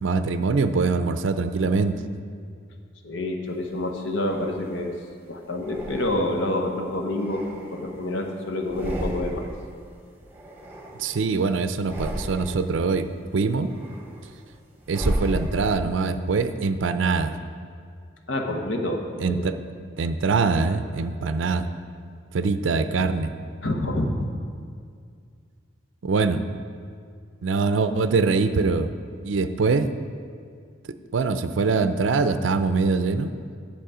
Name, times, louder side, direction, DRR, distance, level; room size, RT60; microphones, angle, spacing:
voice 1, 0.0-2.0 11.0-13.7 14.9-17.3 19.2-19.6 20.0-21.7 22.3-23.3 26.0-26.4 27.4-28.9 29.2-29.9 31.1-33.3, right 4 dB, 75° right, 10 dB, 0.5 m, -23 dB
voice 2, 3.0-4.9 5.3-7.5 7.7-9.5 18.3-19.4 23.6-24.3, left 1 dB, 70° left, 2 dB, 1.1 m, -27 dB
sound 1, 3.7-4.9 5.6-6.5 7.0-8.2 8.6-9.7 9.9-11.3 11.7-12.8 13.2-16.0, right 1 dB, 10° right, 1.0 m, -33 dB
10.5 x 7.2 x 4.9 m, 2.2 s
head